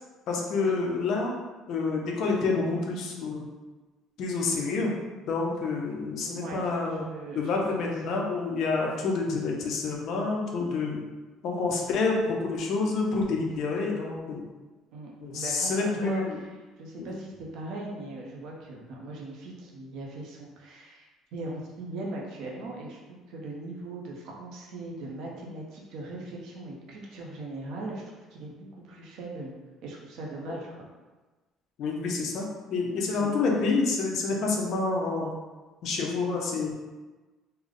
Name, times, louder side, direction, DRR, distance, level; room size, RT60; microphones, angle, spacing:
voice 1, 0.3-1.4 1.7-3.5 4.2-4.9 5.3-7.1 7.3-11.0 11.4-14.4 15.2-16.4 17.0-17.1 30.5-30.6 31.8-35.3 35.8-36.7, left 3 dB, 50° left, -1 dB, 0.5 m, -28 dB
voice 2, 6.2-8.2 14.9-16.3 16.8-29.5 29.8-30.9 33.1-33.3, right 2 dB, 55° right, -2 dB, 0.7 m, -40 dB
3.3 x 2.1 x 3.7 m, 1.2 s
cardioid pair, 175°, 0 cm